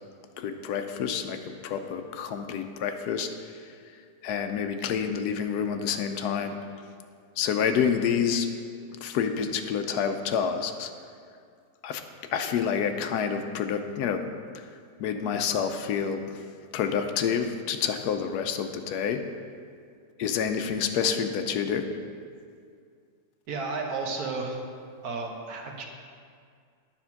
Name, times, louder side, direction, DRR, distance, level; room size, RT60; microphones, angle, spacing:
voice 1, 0.4-3.6 4.2-6.6 7.4-8.5 9.0-10.9 11.8-12.0 12.3-14.2 14.5-14.7 15.0-16.4 16.7-19.2 20.2-21.9, left 7 dB, 75° left, 7 dB, 1.1 m, -28 dB
voice 2, 23.5-24.6 25.0-25.8, right 3 dB, 70° right, 1 dB, 1.4 m, -32 dB
10.0 x 4.3 x 5.7 m, 2.2 s
omnidirectional pair, 1.7 m